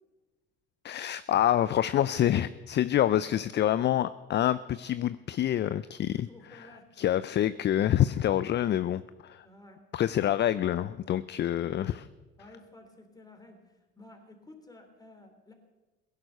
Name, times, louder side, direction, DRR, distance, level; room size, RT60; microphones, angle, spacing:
voice 1, 0.8-6.6 7.0-9.5 9.9-12.1, left 11 dB, 35° left, 15 dB, 0.5 m, -27 dB
voice 2, 6.1-7.0 9.4-10.2 12.4-15.5, left 2 dB, 10° left, 4 dB, 3.5 m, -53 dB
17.0 x 11.0 x 6.6 m, 1.2 s
hypercardioid pair, 75°, 31 cm